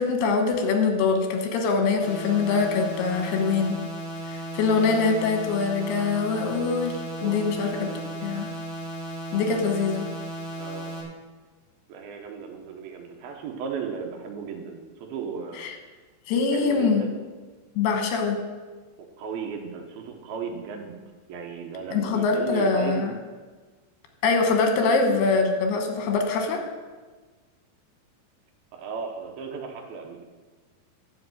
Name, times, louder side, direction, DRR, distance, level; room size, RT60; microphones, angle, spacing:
voice 1, 0.0-3.8 4.5-7.9 8.2-8.5 9.3-10.1 15.6-15.8 16.3-17.0 17.8-18.4 21.9-23.1 24.2-26.6, left 4 dB, 80° left, 5 dB, 3.2 m, -23 dB
sound 1, 2.0-11.0, right 1 dB, 45° left, 2.4 m, -35 dB
voice 2, 7.2-8.2 10.6-10.9 11.9-15.6 16.5-17.2 19.2-21.0 21.3-23.2 28.7-30.2, right 6 dB, 75° right, 3 dB, 2.8 m, -35 dB
10.5 x 5.8 x 7.8 m, 1.3 s
omnidirectional pair, 4.5 m